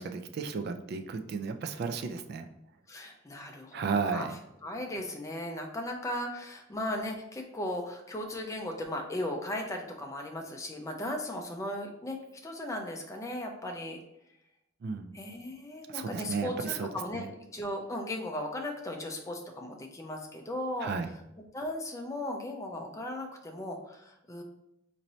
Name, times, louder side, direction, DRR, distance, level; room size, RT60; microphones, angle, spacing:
voice 1, 0.0-2.5 3.7-4.3 14.8-15.1 15.9-17.3 20.8-21.1, right 5 dB, 55° right, 8 dB, 0.3 m, -34 dB
voice 2, 2.9-4.3 4.6-12.2 12.4-14.0 15.1-20.9 21.5-24.4, left 1 dB, 15° left, 2 dB, 0.5 m, -37 dB
4.2 x 2.7 x 3.0 m, 0.83 s
head